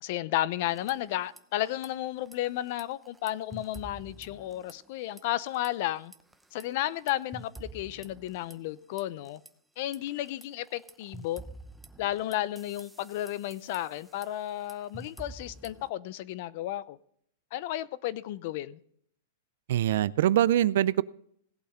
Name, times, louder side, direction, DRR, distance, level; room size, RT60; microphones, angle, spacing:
voice 1, 0.0-6.1 6.5-9.4 9.8-11.4 12.0-17.0 17.5-18.8, left 14 dB, 55° left, 18 dB, 0.6 m, -33 dB
sound 1, 0.6-1.4 1.7-1.9 2.2-4.9 5.2-5.7 6.1-9.5 9.9-15.9, right 2 dB, 5° right, 0.7 m, -49 dB
voice 2, 19.7-21.0, right 12 dB, 70° right, 20 dB, 0.4 m, -23 dB
17.5 x 8.4 x 3.7 m, 0.66 s
hypercardioid pair, 145°, 0 cm